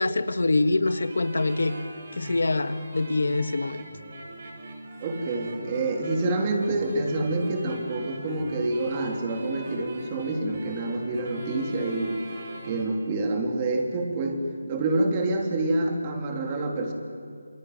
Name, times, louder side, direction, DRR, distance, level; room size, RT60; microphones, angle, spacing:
voice 1, 0.0-1.8 2.1-3.8, left 2 dB, 80° left, 11 dB, 1.6 m, -25 dB
sound 1, 0.8-12.9, right 2 dB, 45° right, 7.0 m, -42 dB
voice 2, 5.0-12.1 12.6-14.4 14.7-16.9, right 2 dB, 25° right, 3 dB, 3.4 m, -27 dB
27.5 x 21.0 x 9.6 m, 2.3 s
figure-of-eight pair, 170°, 0 cm